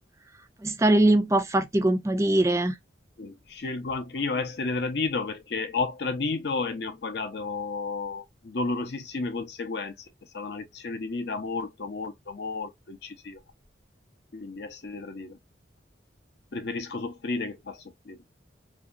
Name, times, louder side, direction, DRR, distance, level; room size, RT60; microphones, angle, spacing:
voice 1, 0.6-2.7, right 1 dB, 15° right, 0.4 m, -22 dB
voice 2, 3.2-9.9 10.3-13.4 14.3-15.4 16.5-18.2, left 3 dB, 60° left, 0.6 m, -32 dB
2.7 x 2.2 x 2.4 m
head